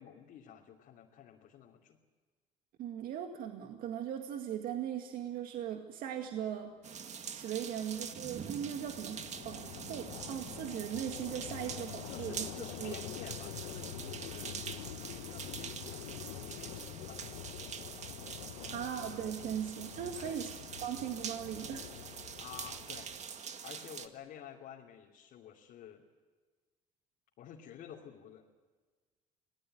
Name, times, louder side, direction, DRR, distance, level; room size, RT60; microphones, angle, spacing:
voice 1, 0.0-2.0 12.1-14.7 15.1-17.2 18.6-18.8 20.1-20.4 22.4-23.1 23.6-26.0 27.4-28.5, left 9 dB, 65° left, -2 dB, 2.9 m, -51 dB
voice 2, 2.8-6.7 7.3-12.5 12.8-12.9 18.7-20.5 20.8-21.9, right 9 dB, 70° right, 4 dB, 2.0 m, -39 dB
sound 1, 6.8-24.1, right 7 dB, 50° right, 2.0 m, -45 dB
sound 2, 7.1-23.4, left 12 dB, 85° left, 1.2 m, -47 dB
25.0 x 18.0 x 9.4 m, 1.4 s
supercardioid pair, 75°, 15 cm